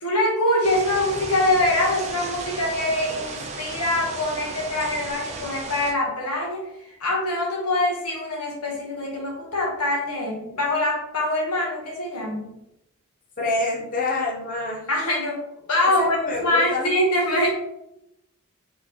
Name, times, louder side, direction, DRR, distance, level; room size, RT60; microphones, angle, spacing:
voice 1, 0.0-12.5 14.9-15.4 15.7-16.2 16.4-17.5, left 1 dB, 85° left, -1 dB, 1.3 m, -24 dB
sound 1, 0.6-5.9, right 3 dB, 30° right, 0.5 m, -35 dB
voice 2, 13.4-14.9 16.0-16.9, left 2 dB, 40° left, -3 dB, 0.7 m, -26 dB
4.2 x 3.6 x 3.0 m, 0.83 s
head